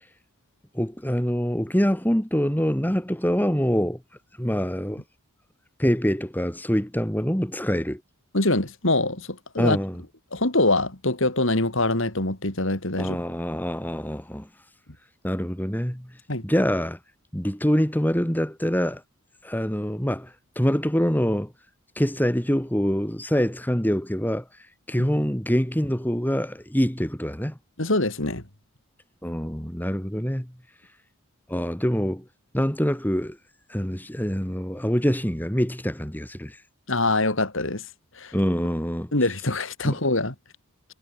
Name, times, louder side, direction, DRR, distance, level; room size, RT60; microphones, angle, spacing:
voice 1, 0.7-4.0 4.4-5.0 5.8-8.0 9.6-10.0 13.0-14.5 15.2-16.1 16.4-17.0 17.3-19.0 19.4-21.5 22.0-24.4 24.9-27.5 29.2-30.5 31.5-32.2 32.5-33.4 33.7-36.6 38.3-39.1 39.8-39.9, equal, 10° left, 2.5 m, -25 dB
voice 2, 8.3-9.8 10.3-13.2 16.3-16.4 27.8-28.4 36.9-37.8 38.2-38.3 39.1-40.3, left 2 dB, 60° left, 3.5 m, -24 dB
head